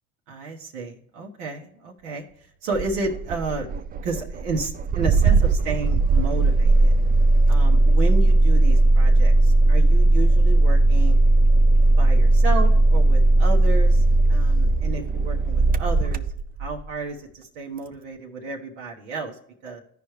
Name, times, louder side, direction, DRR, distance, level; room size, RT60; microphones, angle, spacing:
voice 1, 0.3-2.3 2.6-3.7 4.0-6.9 7.5-11.2 11.9-16.2 16.6-19.8, right 3 dB, 85° right, 0 dB, 1.2 m, -32 dB
Engine starting, 2.7-16.9, right 2 dB, 25° right, 0.4 m, -17 dB
14.0 x 5.1 x 3.2 m, 0.69 s
hypercardioid pair, 75°, 36 cm